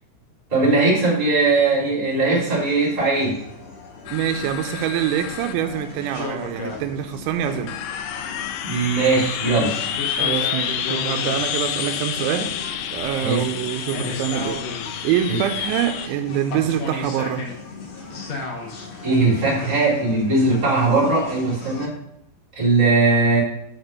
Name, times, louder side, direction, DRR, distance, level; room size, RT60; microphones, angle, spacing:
voice 1, 0.5-3.4 8.6-9.8 13.2-13.4 15.3-15.4 19.0-21.9 22.5-23.4, right 3 dB, 10° right, -6 dB, 2.5 m, -19 dB
sound 1, 2.4-21.9, left 3 dB, 65° left, 1.7 m, -35 dB
sound 2, 4.1-16.1, left 9 dB, 85° left, 2.9 m, -29 dB
voice 2, 4.1-7.7 10.2-12.5 12.9-17.5, right 10 dB, 90° right, 6 dB, 3.0 m, -25 dB
7.0 x 6.1 x 5.3 m, 0.83 s
omnidirectional pair, 5.2 m